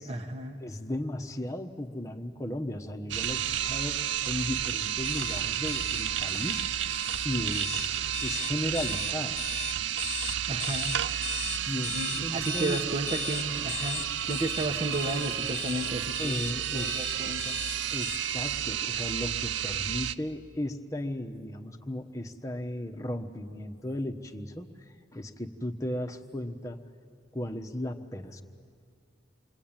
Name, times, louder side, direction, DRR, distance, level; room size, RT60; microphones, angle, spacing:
voice 1, 0.1-0.6 10.5-10.9 11.9-16.4 16.7-17.6, right 2 dB, 30° right, 2 dB, 1.3 m, -33 dB
voice 2, 0.6-6.9 7.2-9.4 11.7-12.8 16.2-17.4 17.9-24.7 25.1-26.8 27.3-28.4, left 1 dB, 15° left, 4 dB, 1.2 m, -35 dB
sound 1, 3.1-20.2, right 10 dB, 80° right, 0.6 m, -31 dB
sound 2, 5.0-18.2, left 8 dB, 35° left, 0.7 m, -39 dB
28.0 x 23.5 x 8.9 m, 2.2 s
head